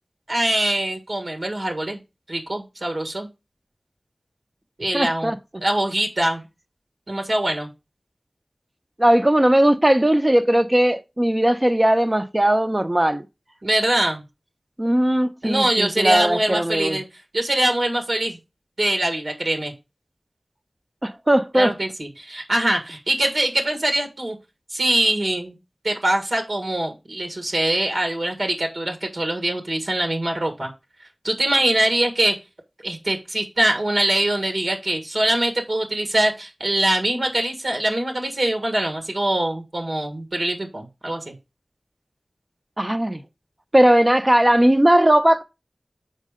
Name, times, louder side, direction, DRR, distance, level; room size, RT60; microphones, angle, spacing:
voice 1, 0.3-2.0 2.3-3.3 4.8-5.3 5.6-6.4 7.1-7.7 13.6-14.2 15.4-17.0 17.3-18.4 18.8-19.7 21.5-24.4 24.7-25.5 25.8-30.7 31.2-32.3 32.8-41.3, right 1 dB, 70° right, 1.7 m, -23 dB
voice 2, 4.9-5.6 9.0-13.2 14.8-17.0 21.0-21.7 42.8-43.2 43.7-45.4, right 1 dB, 30° right, 0.8 m, -18 dB
6.6 x 4.7 x 5.0 m
wide cardioid pair, 50°, 0 cm